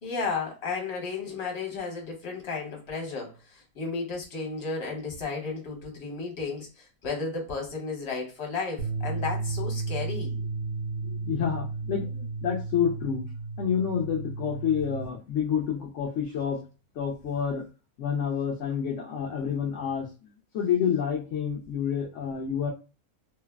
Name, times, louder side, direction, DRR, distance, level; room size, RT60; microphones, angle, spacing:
voice 1, 0.0-10.3, left 4 dB, 50° left, 0 dB, 1.2 m, -33 dB
sound 1, 8.8-15.0, right 3 dB, 35° right, 0.6 m, -33 dB
voice 2, 11.0-13.3 13.6-16.6 17.0-17.6 18.0-22.7, left 8 dB, 65° left, -1 dB, 0.8 m, -29 dB
3.2 x 2.0 x 2.2 m, 0.31 s
omnidirectional pair, 1.6 m